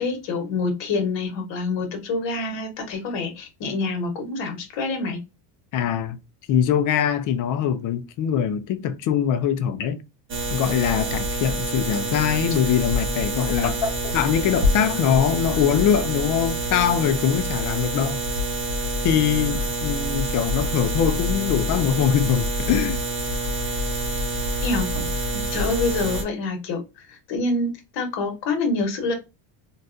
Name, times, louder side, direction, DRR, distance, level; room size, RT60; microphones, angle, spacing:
voice 1, 0.0-5.2 24.6-24.9 25.3-29.1, left 3 dB, 60° left, 1.3 m, -26 dB
voice 2, 5.7-6.2 6.5-10.0 10.5-13.7 14.1-18.2 19.0-23.0, left 9 dB, 40° left, 0.4 m, -22 dB
sound 1, 10.3-26.2, right 1 dB, 25° right, 0.7 m, -26 dB
3.9 x 2.4 x 2.5 m
cardioid pair, 140°, 49 cm